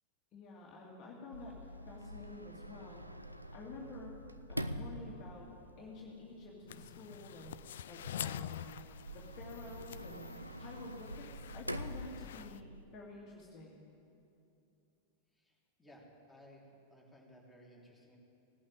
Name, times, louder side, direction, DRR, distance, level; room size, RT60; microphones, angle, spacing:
voice 1, 0.3-3.1 3.5-4.2 4.5-5.5 5.8-7.5 7.8-8.8 9.1-10.3 10.6-12.6 12.9-13.8, left 3 dB, 35° left, -3 dB, 2.3 m, -50 dB
Sliding door, 1.3-12.8, equal, 90° right, 0.6 m, -46 dB
sound 1, 6.7-12.6, left 10 dB, 60° left, 0.3 m, -47 dB
voice 2, 15.3-18.2, equal, 5° left, -3 dB, 3.2 m, -59 dB
18.0 x 8.6 x 9.2 m, 2.7 s
figure-of-eight pair, 90°, 0 cm